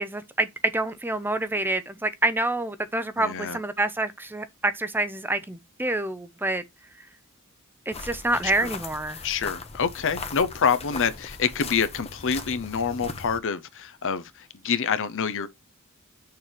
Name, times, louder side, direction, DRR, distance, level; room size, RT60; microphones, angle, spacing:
voice 1, 0.0-6.6 7.9-9.2, right 2 dB, 10° right, 0.7 m, -27 dB
voice 2, 3.2-3.6 8.6-8.7 9.2-15.5, left 6 dB, 60° left, 0.7 m, -27 dB
sound 1, 7.9-13.4, left 4 dB, 30° left, 0.9 m, -39 dB
6.7 x 3.3 x 5.8 m
head